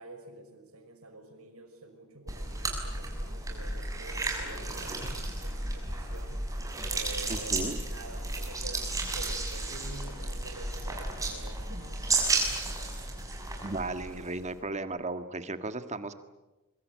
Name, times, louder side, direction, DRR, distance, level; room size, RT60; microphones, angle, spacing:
voice 1, 0.0-6.4 6.9-12.1, right 2 dB, 80° right, 5 dB, 6.2 m, -47 dB
sound 1, 2.3-14.5, right 2 dB, 15° right, 6.5 m, -33 dB
voice 2, 7.3-7.8 13.6-16.1, right 2 dB, 30° right, 10 dB, 1.7 m, -35 dB
25.0 x 24.0 x 9.4 m, 1.1 s
head